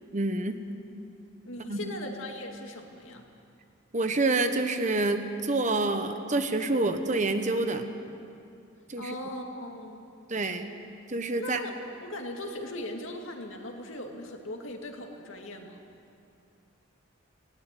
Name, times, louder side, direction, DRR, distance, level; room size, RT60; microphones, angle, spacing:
voice 1, 0.1-0.6 1.7-1.9 3.9-7.9 8.9-9.1 10.3-10.7 11.1-11.6, right 2 dB, 35° right, 8 dB, 1.1 m, -27 dB
voice 2, 1.4-3.2 9.0-10.1 11.4-15.8, left 1 dB, 75° left, 2 dB, 2.3 m, -39 dB
19.0 x 17.0 x 8.3 m, 2.5 s
head